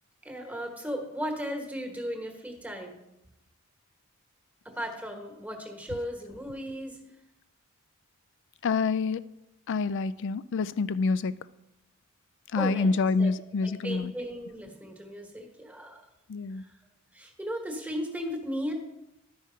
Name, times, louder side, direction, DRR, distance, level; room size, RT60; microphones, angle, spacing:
voice 1, 0.2-3.0 4.6-7.0 12.5-12.9 13.2-13.3 13.6-16.0 16.6-16.7 17.1-18.7, equal, 5° right, 1.4 m, -36 dB
voice 2, 8.6-9.2 9.7-11.4 12.5-14.1 16.3-16.6, left 4 dB, 60° left, 0.4 m, -27 dB
12.0 x 4.8 x 5.6 m
head